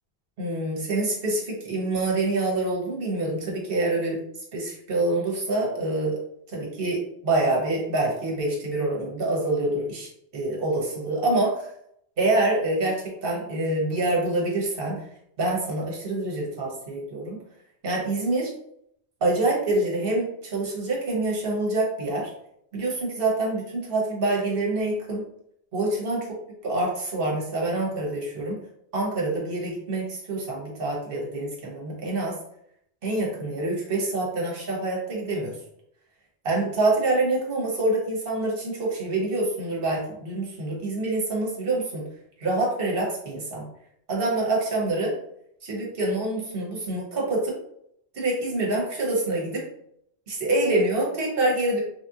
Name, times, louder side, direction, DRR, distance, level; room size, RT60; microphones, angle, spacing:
voice 1, 0.4-4.2 4.5-6.1 6.5-11.7 12.2-15.0 15.4-17.4 17.8-18.5 19.2-22.3 22.7-25.2 25.7-26.3 26.6-28.6 28.9-32.4 33.0-35.5 36.4-42.0 42.4-43.6 44.1-45.1 45.6-47.5 48.1-49.6 50.3-51.8, right 2 dB, 60° right, -2 dB, 1.1 m, -26 dB
3.3 x 2.4 x 2.7 m, 0.73 s
omnidirectional pair, 1.1 m